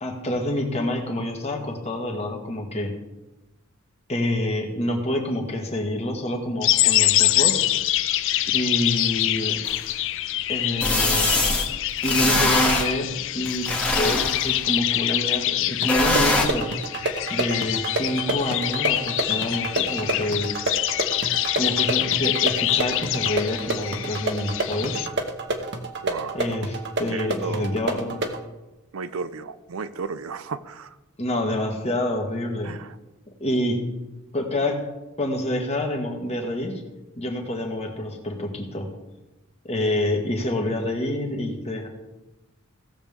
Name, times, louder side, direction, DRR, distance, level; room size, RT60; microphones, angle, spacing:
voice 1, 0.0-2.9 4.1-7.6 8.5-9.6 10.5-11.3 12.0-16.7 17.3-20.5 21.6-25.0 26.3-28.2 31.2-32.7 33.4-33.8 34.3-34.8 35.2-36.7 37.2-38.9 39.7-41.9, left 1 dB, 30° left, 2 dB, 1.7 m, -27 dB
sound 1, 6.6-25.1, left 14 dB, 60° left, 0.4 m, -25 dB
sound 2, 9.7-9.8 10.8-11.7 12.0-12.9 13.5-14.6 15.9-16.5, left 2 dB, 5° left, 1.5 m, -22 dB
sound 3, 15.8-28.4, right 2 dB, 55° right, 1.2 m, -30 dB
voice 2, 26.0-26.4 27.1-27.7 28.9-31.0 32.6-33.0, right 5 dB, 75° right, 13 dB, 0.5 m, -33 dB
17.5 x 7.2 x 3.6 m, 1.0 s
head